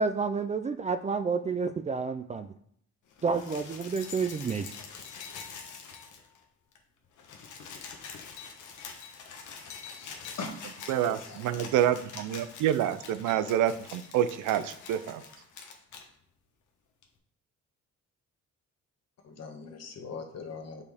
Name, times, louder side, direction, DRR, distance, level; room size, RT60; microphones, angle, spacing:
voice 1, 0.0-2.5 3.2-4.6, right 5 dB, 25° right, 9 dB, 0.3 m, -29 dB
sound 1, 3.1-6.4 6.7-6.8 7.0-16.1 17.0-17.1, left 6 dB, 75° left, 1.1 m, -45 dB
voice 2, 9.7-10.6 10.9-11.7 19.2-20.8, left 4 dB, 55° left, 3 dB, 1.4 m, -42 dB
voice 3, 10.9-15.2, right 11 dB, 85° right, 13 dB, 0.5 m, -27 dB
6.2 x 5.4 x 3.5 m, 0.66 s
cardioid pair, 90°, 30 cm